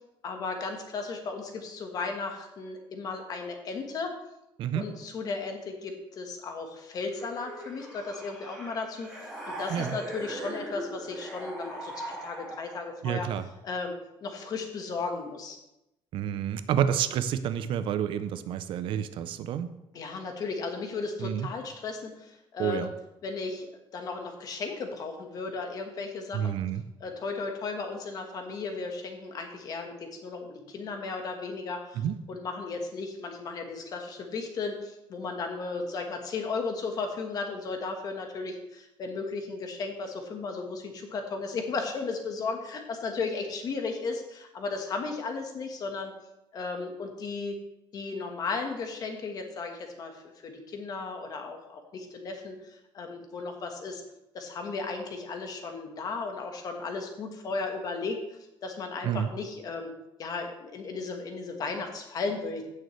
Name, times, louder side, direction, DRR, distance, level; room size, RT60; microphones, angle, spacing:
voice 1, 0.2-4.1 4.7-9.2 9.4-13.3 13.6-13.9 14.2-15.6 19.9-22.9 23.2-23.7 23.9-26.5 27.0-46.1 46.5-47.6 47.9-54.0 54.3-58.2 58.6-59.9 60.2-62.7, left 4 dB, 40° left, 4 dB, 1.3 m, -35 dB
sound 1, 7.1-13.0, right 1 dB, 5° right, 3.3 m, -40 dB
voice 2, 13.0-13.5 16.1-19.7 21.2-21.5 22.6-22.9 26.3-26.8 32.0-32.2 59.0-59.3, right 9 dB, 60° right, 12 dB, 0.5 m, -29 dB
15.5 x 6.5 x 3.2 m, 0.90 s
cardioid pair, 175°, 10 cm